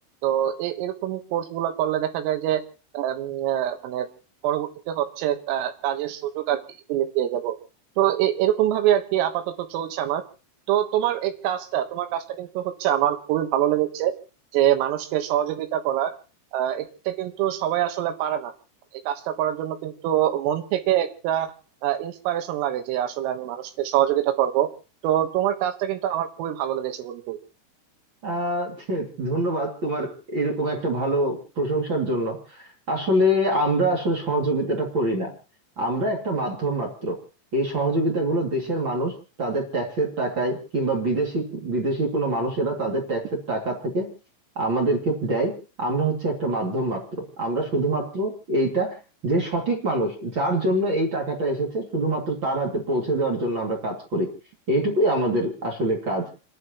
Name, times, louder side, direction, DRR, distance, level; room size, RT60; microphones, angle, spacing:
voice 1, 0.2-2.6 2.9-4.1 4.4-6.6 6.9-7.6 8.0-10.2 10.7-14.1 14.5-16.1 16.5-18.5 19.1-21.5 21.8-24.7 25.0-27.4, right 12 dB, 85° right, 6 dB, 3.9 m, -25 dB
voice 2, 28.2-35.3 35.8-37.2 37.5-44.1 44.6-47.0 47.4-49.0 49.2-54.3 54.7-56.3, right 1 dB, 45° right, 0 dB, 1.7 m, -25 dB
29.5 x 11.0 x 3.0 m, 0.35 s
omnidirectional pair, 5.8 m